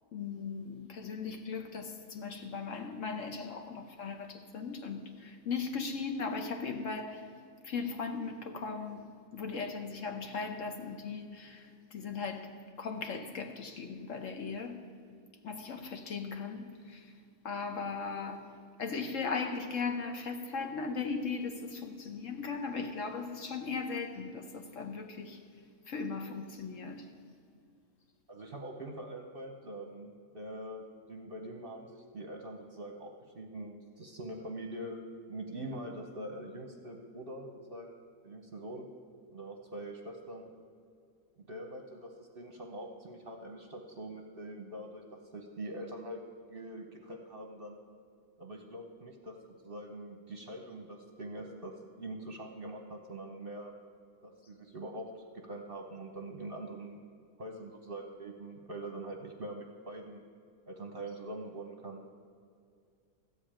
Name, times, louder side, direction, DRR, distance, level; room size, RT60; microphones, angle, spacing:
voice 1, 0.1-7.3 7.6-9.0 9.3-12.5 12.8-14.8 15.4-17.1 17.4-18.5 18.8-25.4 25.9-27.1, left 5 dB, 60° left, 1.1 m, -38 dB
voice 2, 28.3-30.8 31.1-35.0 35.3-38.0 38.2-38.9 39.3-40.5 41.4-45.0 45.3-46.2 46.5-47.8 48.4-49.4 49.6-53.7 54.2-57.0 57.4-60.2 60.7-62.0, right 1 dB, 45° right, 0.9 m, -43 dB
14.0 x 5.1 x 8.8 m
omnidirectional pair, 1.7 m